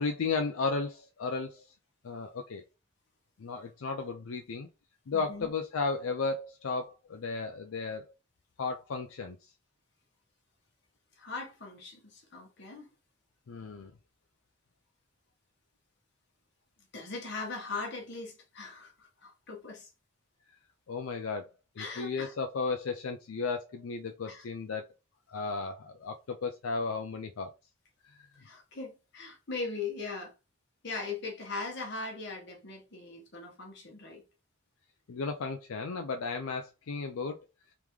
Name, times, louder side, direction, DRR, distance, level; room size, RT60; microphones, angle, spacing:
voice 1, 0.0-1.7 2.0-2.6 3.4-4.7 5.1-8.1 8.6-9.4 13.5-13.9 20.9-21.5 21.8-24.8 25.3-27.5 35.1-37.4, left 4 dB, 90° left, 0.5 m, -34 dB
voice 2, 5.1-5.5 11.2-12.9 16.9-19.9 21.8-22.3 24.2-24.4 28.4-30.3 30.8-34.2, left 4 dB, 55° left, 1.3 m, -40 dB
3.5 x 3.5 x 3.1 m
head